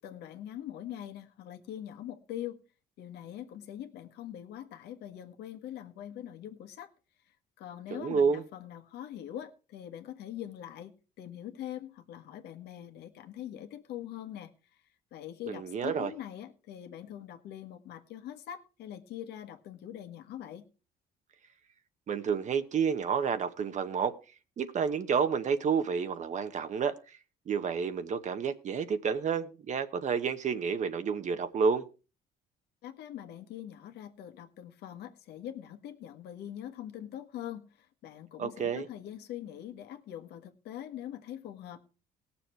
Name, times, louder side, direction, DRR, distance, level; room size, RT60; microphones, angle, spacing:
voice 1, 0.0-2.6 3.0-6.9 7.3-14.8 15.1-20.7 32.8-41.8, left 11 dB, 75° left, 1.5 m, -43 dB
voice 2, 7.9-8.4 15.5-16.1 22.1-24.1 24.6-27.2 27.5-31.9 38.4-38.9, right 6 dB, 45° right, 0.9 m, -30 dB
18.5 x 7.0 x 4.5 m
cardioid pair, 110°, 17 cm